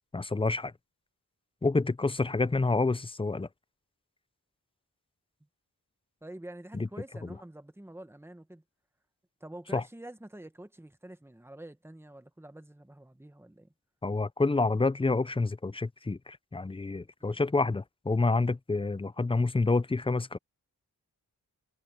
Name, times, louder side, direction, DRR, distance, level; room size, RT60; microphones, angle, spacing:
voice 1, 0.1-0.7 1.6-3.5 6.7-6.9 9.7-9.8 14.0-20.4, left 3 dB, 15° left, 0.4 m, -28 dB
voice 2, 6.2-8.6 9.4-13.7 17.3-17.4, right 1 dB, 5° right, 1.2 m, -47 dB
wide cardioid pair, 100°, 37 cm